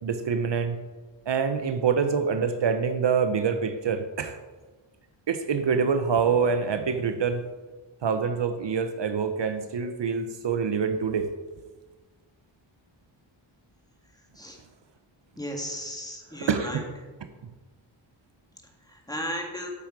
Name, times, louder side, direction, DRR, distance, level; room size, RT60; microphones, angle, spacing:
voice 1, 0.0-0.8 1.3-4.4 5.3-7.5 8.0-11.3 16.3-16.8, right 6 dB, 60° right, 8 dB, 0.7 m, -26 dB
voice 2, 15.4-16.8 18.9-19.7, equal, 10° left, 1 dB, 1.8 m, -34 dB
8.4 x 8.3 x 4.8 m, 1.3 s
wide cardioid pair, 100°, 48 cm